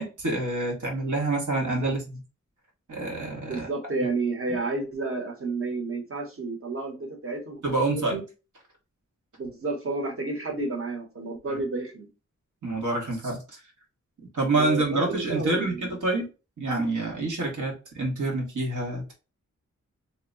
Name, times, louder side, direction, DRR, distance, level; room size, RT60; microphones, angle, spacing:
voice 1, 0.0-2.2 2.9-3.7 4.5-4.6 7.6-8.2 11.5-11.6 12.6-13.6 14.3-16.3 16.6-19.1, right 2 dB, 90° right, 1.3 m, -27 dB
voice 2, 1.6-1.9 3.5-7.6 7.9-8.2 9.4-12.1 14.5-16.0, right 3 dB, 45° right, 1.0 m, -31 dB
2.9 x 2.1 x 3.7 m
wide cardioid pair, 110°, 29 cm